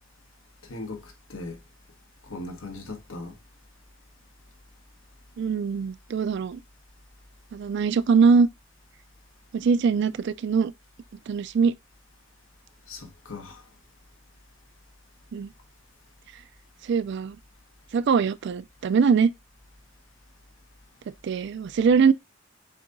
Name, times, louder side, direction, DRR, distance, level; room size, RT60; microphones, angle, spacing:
voice 1, 0.7-1.6 2.2-3.3 12.9-13.6, left 2 dB, 85° left, 1.4 m, -38 dB
voice 2, 5.4-6.6 7.5-8.5 9.5-10.7 11.3-11.7 15.3-15.5 16.9-17.4 17.9-19.3 21.2-22.1, right 5 dB, 60° right, 0.3 m, -22 dB
7.3 x 2.8 x 2.6 m
head